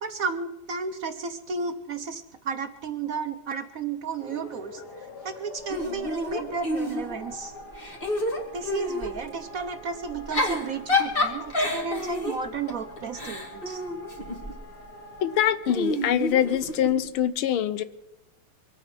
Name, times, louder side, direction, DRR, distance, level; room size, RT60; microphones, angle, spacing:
voice 1, 0.0-7.5 8.5-13.8, right 5 dB, 55° right, 8 dB, 1.0 m, -33 dB
sound 1, 4.2-15.6, left 1 dB, 50° left, 2.6 m, -44 dB
Giggle / Chuckle chortle, 5.7-7.3 7.7-9.1 10.1-14.6 15.7-17.1, left 2 dB, 25° left, 2.5 m, -29 dB
voice 2, 15.2-17.8, left 10 dB, 80° left, 14 dB, 1.7 m, -24 dB
24.0 x 9.0 x 6.0 m, 0.91 s
omnidirectional pair, 2.3 m